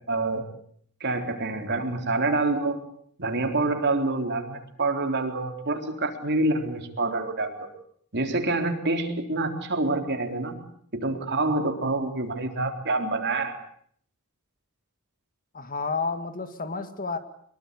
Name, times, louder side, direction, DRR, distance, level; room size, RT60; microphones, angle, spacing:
voice 1, 0.1-0.4 1.0-2.8 3.2-7.6 8.1-10.5 10.9-13.5, right 2 dB, 50° right, 4 dB, 3.9 m, -27 dB
voice 2, 15.5-17.2, left 4 dB, 40° left, 9 dB, 2.0 m, -30 dB
24.0 x 23.0 x 8.4 m, 0.64 s
head